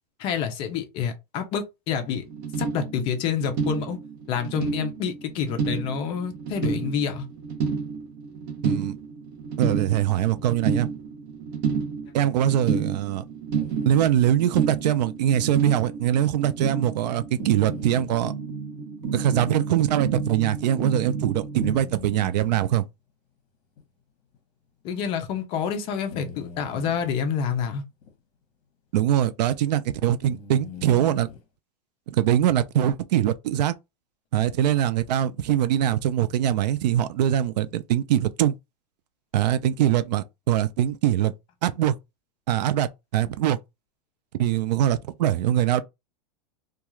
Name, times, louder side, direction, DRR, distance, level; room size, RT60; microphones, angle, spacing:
voice 1, 0.2-2.2 2.6-4.0 4.3-7.3 24.8-27.8, left 7 dB, 25° left, 0.4 m, -28 dB
sound 1, 2.3-21.8, right 5 dB, 40° right, 0.7 m, -31 dB
voice 2, 8.6-9.0 9.6-10.9 12.1-13.2 13.9-18.3 19.1-22.8 28.9-31.3 32.1-33.7 34.3-38.5 39.3-41.3 41.6-41.9 42.5-43.6 44.4-45.8, right 11 dB, 80° right, 0.4 m, -23 dB
sound 2, 13.5-14.3 16.1-16.2 17.4-18.3 19.0-19.1 19.8-19.9 21.6-22.7 23.8-23.9 24.3-24.4 26.1-27.1 28.0-28.1 29.1-29.2 30.2-31.4, left 5 dB, 45° left, 0.9 m, -42 dB
2.3 x 2.3 x 3.0 m
supercardioid pair, 165°, 21 cm